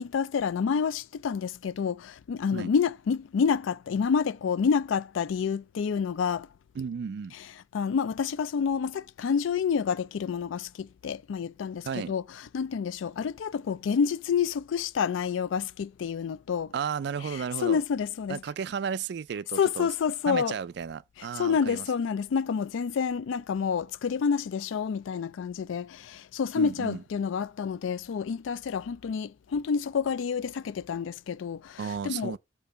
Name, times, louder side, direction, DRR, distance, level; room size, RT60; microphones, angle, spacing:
voice 1, 0.0-6.5 7.7-12.2 12.5-16.7 17.3-18.4 19.6-20.6 21.2-32.4, left 6 dB, 80° left, 0.4 m, -28 dB
voice 2, 6.8-7.3 11.8-12.1 16.7-17.8 18.3-19.9 20.3-21.8 26.5-27.0 31.8-32.4, right 6 dB, 60° right, 0.3 m, -33 dB
6.7 x 2.8 x 5.3 m
head